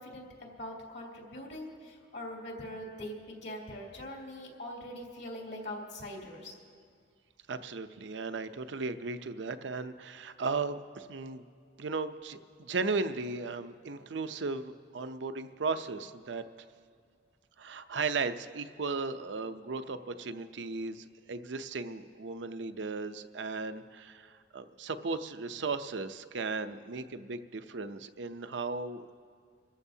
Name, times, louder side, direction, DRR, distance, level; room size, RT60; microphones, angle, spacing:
voice 1, 0.0-6.5, left 1 dB, 65° left, -2 dB, 3.0 m, -42 dB
voice 2, 7.5-11.4 11.8-16.4 17.6-29.2, right 4 dB, 75° right, 10 dB, 0.6 m, -36 dB
28.0 x 14.0 x 2.8 m, 2.1 s
head